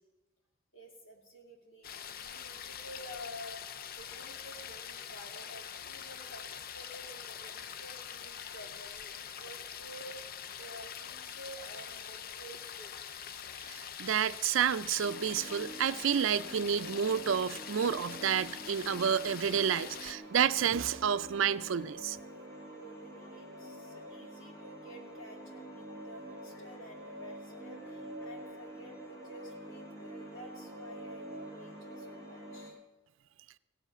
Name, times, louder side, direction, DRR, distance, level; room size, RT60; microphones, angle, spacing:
voice 1, 0.7-13.0 22.8-32.8, equal, 70° left, 2.6 m, -51 dB
sound 1, 1.8-20.1, left 8 dB, 45° left, 0.5 m, -44 dB
voice 2, 13.6-22.2, right 8 dB, 65° right, 0.4 m, -30 dB
sound 2, 15.0-32.7, right 1 dB, 15° left, 2.9 m, -47 dB
16.5 x 8.1 x 6.1 m
head